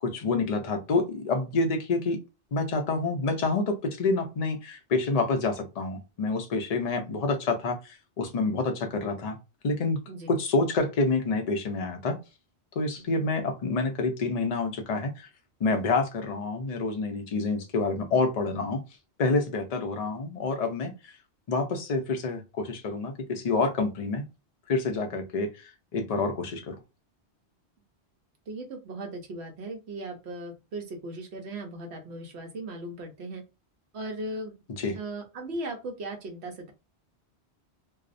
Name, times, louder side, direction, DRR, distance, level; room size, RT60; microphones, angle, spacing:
voice 1, 0.0-2.2 2.5-9.4 9.6-10.0 10.3-12.2 12.8-15.3 15.6-18.8 19.2-21.1 21.5-24.2 24.7-25.5 25.9-26.8 34.8-35.0, left 3 dB, 45° left, 0.5 m, -28 dB
voice 2, 28.5-33.4 33.9-34.5 34.9-36.7, right 2 dB, 75° right, 1.0 m, -37 dB
2.7 x 2.0 x 2.5 m
omnidirectional pair, 1.1 m